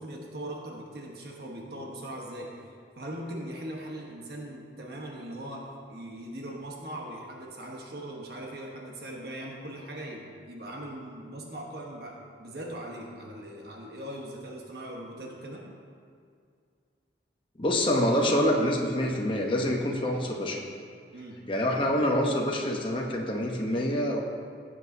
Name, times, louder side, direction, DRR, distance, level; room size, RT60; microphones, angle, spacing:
voice 1, 0.0-15.6 21.1-21.4, right 1 dB, 60° right, -1 dB, 1.2 m, -40 dB
voice 2, 17.6-20.6 21.5-24.2, left 1 dB, 30° left, -1 dB, 0.9 m, -26 dB
15.5 x 7.8 x 2.8 m, 2.3 s
head